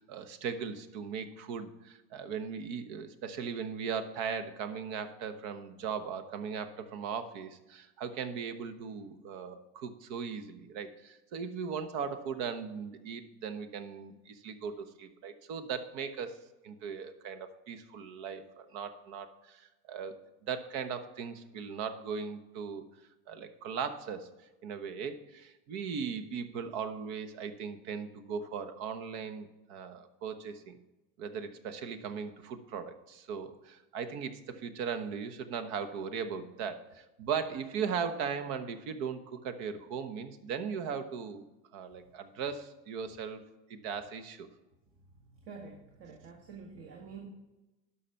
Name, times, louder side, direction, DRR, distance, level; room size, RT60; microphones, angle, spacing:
voice 1, 0.0-16.4 16.6-20.2 20.5-22.8 23.3-24.3 24.6-30.8 31.2-41.5 41.7-43.4 43.7-44.5, right 6 dB, 70° right, 10 dB, 1.1 m, -38 dB
voice 2, 45.4-47.3, right 5 dB, 45° right, 1 dB, 1.5 m, -47 dB
11.5 x 5.7 x 5.7 m, 1.0 s
cardioid pair, 135°, 29 cm